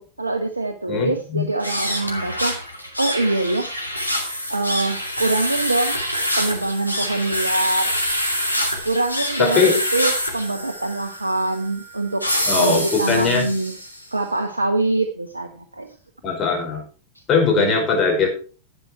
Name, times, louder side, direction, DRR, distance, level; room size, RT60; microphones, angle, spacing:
voice 1, 0.0-2.6 3.0-3.7 4.5-6.0 6.4-8.0 8.8-12.3 12.5-13.7 14.1-15.9 17.5-17.7, right 2 dB, 80° right, 6 dB, 1.0 m, -24 dB
voice 2, 0.9-1.4 9.4-9.7 12.5-13.5 16.2-16.8 17.3-18.3, left 5 dB, 30° left, 1 dB, 5.3 m, -20 dB
sound 1, 1.5-14.0, equal, 90° left, 2.2 m, -26 dB
11.5 x 9.1 x 4.6 m, 0.38 s
figure-of-eight pair, 90°, 0 cm